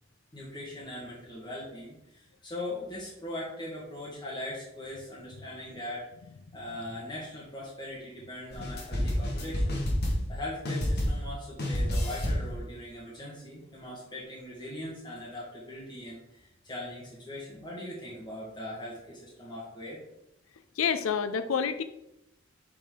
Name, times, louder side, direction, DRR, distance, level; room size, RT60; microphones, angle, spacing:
voice 1, 0.3-6.1 6.5-9.8 10.3-20.0, left 1 dB, 20° left, -7 dB, 1.6 m, -40 dB
sound 1, 8.5-10.4 10.6-11.3 11.6-12.5, equal, 55° left, 1.6 m, -29 dB
voice 2, 20.8-21.8, left 7 dB, 85° left, 10 dB, 0.5 m, -28 dB
8.4 x 4.2 x 3.8 m, 0.85 s
head